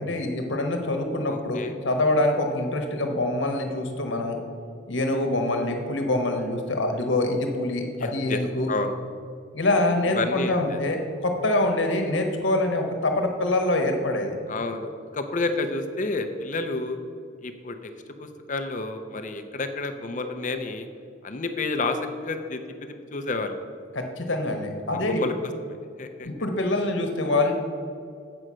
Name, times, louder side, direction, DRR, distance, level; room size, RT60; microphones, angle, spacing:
voice 1, 0.0-4.4 4.9-8.7 9.5-14.4 23.9-25.2 26.2-27.5, left 2 dB, 75° left, 4 dB, 1.1 m, -25 dB
voice 2, 1.3-1.8 8.0-8.4 8.7-8.9 10.1-10.8 14.5-17.0 17.4-17.9 18.2-20.9 21.2-23.6 25.1-25.3 26.0-26.3, left 3 dB, 40° left, 7 dB, 0.6 m, -30 dB
7.7 x 5.6 x 6.2 m, 2.3 s
head